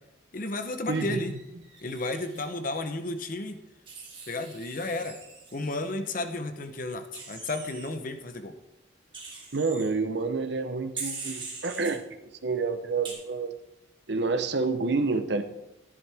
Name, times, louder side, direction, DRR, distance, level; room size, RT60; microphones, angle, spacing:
voice 1, 0.3-1.4 1.8-3.6 4.3-5.2 5.5-8.6, left 2 dB, 45° left, 8 dB, 0.8 m, -33 dB
Wild animals, 0.9-2.5 3.9-5.9 7.1-7.9 9.1-9.8 11.0-11.9 13.0-13.1, right 4 dB, 25° right, 2.1 m, -42 dB
voice 2, 0.9-1.2 9.5-12.0 12.4-13.5 14.1-15.4, right 4 dB, 60° right, 7 dB, 0.8 m, -28 dB
11.0 x 10.5 x 3.4 m, 0.94 s
head